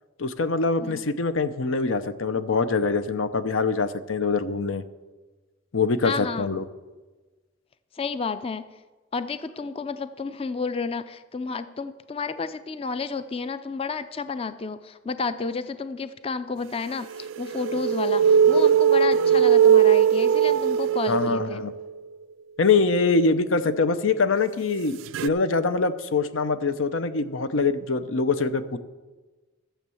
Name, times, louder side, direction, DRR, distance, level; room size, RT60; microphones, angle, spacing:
voice 1, 0.2-4.8 5.7-6.6 21.1-21.7 22.6-28.8, left 4 dB, 85° left, 12 dB, 0.7 m, -24 dB
voice 2, 6.0-6.5 7.9-8.8 9.1-21.6, left 4 dB, 30° left, 12 dB, 0.4 m, -31 dB
sound 1, 17.2-21.9 25.1-25.3, right 8 dB, 75° right, 0.3 m, -19 dB
12.5 x 7.4 x 7.0 m, 1.2 s
head